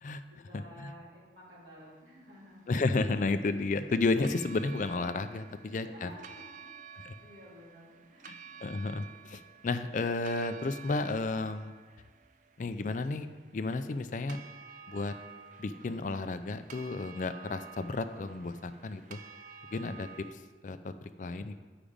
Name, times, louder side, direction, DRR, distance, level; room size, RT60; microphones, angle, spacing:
voice 1, 0.3-2.8 5.3-5.4 5.7-6.7 7.2-8.5, equal, 90° right, -6 dB, 2.8 m, -53 dB
sound 1, 2.4-20.3, right 6 dB, 45° right, 0.4 m, -52 dB
voice 2, 2.7-5.4 5.7-6.1 8.6-11.7 12.6-13.3 13.5-14.4 14.9-15.1 15.6-19.2 19.7-20.1 20.6-21.5, left 3 dB, 45° left, 10 dB, 0.4 m, -32 dB
8.6 x 5.0 x 5.1 m, 1.4 s
head